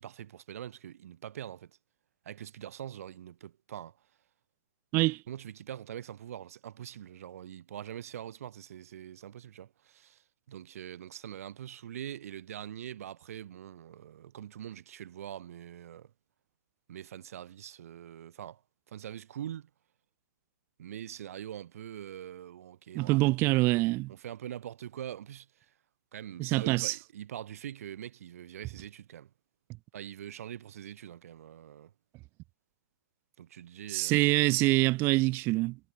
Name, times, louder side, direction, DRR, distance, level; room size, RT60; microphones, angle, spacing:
voice 1, 0.0-1.7 2.3-3.9 5.3-10.2 10.5-16.1 16.9-18.6 18.9-19.7 20.8-23.4 24.1-25.5 26.1-29.3 29.9-31.9 33.4-34.3, right 10 dB, 50° right, 3.9 m, -43 dB
voice 2, 22.9-24.1 26.4-26.9 33.9-35.8, right 21 dB, 25° right, 1.2 m, -25 dB
hypercardioid pair, 145°, 10 cm